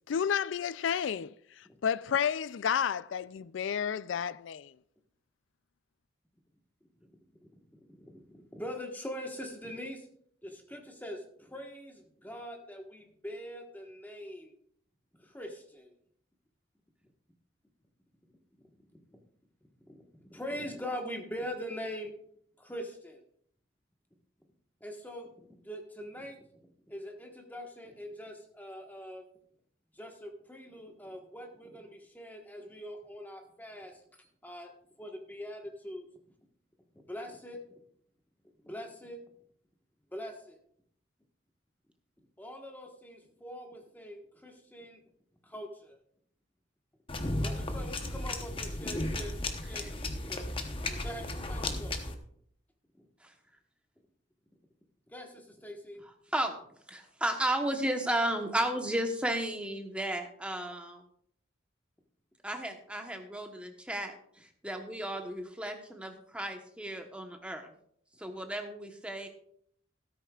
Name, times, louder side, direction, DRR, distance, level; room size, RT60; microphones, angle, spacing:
voice 1, 0.1-4.7, left 7 dB, 75° left, 0.4 m, -31 dB
voice 2, 7.5-10.1 10.4-14.5 15.2-15.9 19.1-19.2 19.9-20.0 20.2-22.1 22.6-23.2 24.8-26.5 26.9-29.2 29.9-34.7 35.0-36.1 37.1-37.6 38.6-39.2 40.1-40.6 42.4-45.0 45.4-46.0 47.4-50.0 50.2-50.5 51.0-52.2 53.0-53.1 55.1-56.0, equal, 10° left, 1.3 m, -43 dB
sound 1, 47.1-52.1, left 2 dB, 30° left, 0.9 m, -35 dB
voice 3, 56.9-61.0 62.4-67.7 68.2-69.3, right 1 dB, 5° right, 1.0 m, -34 dB
13.5 x 13.0 x 2.4 m
head